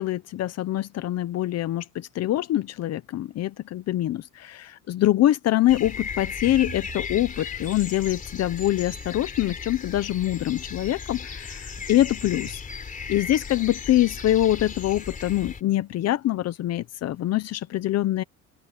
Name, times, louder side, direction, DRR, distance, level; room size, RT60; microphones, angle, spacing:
voice 1, 0.0-12.6 13.1-18.2, left 14 dB, 50° left, 0.7 m, -24 dB
sound 1, 5.7-15.6, left 5 dB, 25° left, 3.6 m, -36 dB
sound 2, 6.4-7.3 11.8-12.7, right 8 dB, 40° right, 5.8 m, -44 dB
open air
cardioid pair, 165°, 32 cm